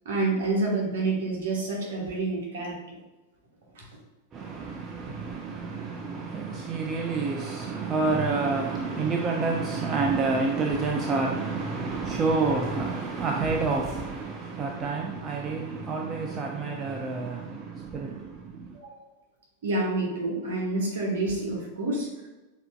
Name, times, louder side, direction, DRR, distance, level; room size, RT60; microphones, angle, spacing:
voice 1, 0.0-3.0 3.7-3.9 5.1-5.2 18.7-19.0 19.6-22.1, right 2 dB, 60° right, 1.1 m, -28 dB
voice 2, 4.3-18.8, right 4 dB, 25° right, 0.4 m, -28 dB
6.6 x 2.6 x 2.2 m
figure-of-eight pair, 90°, 0 cm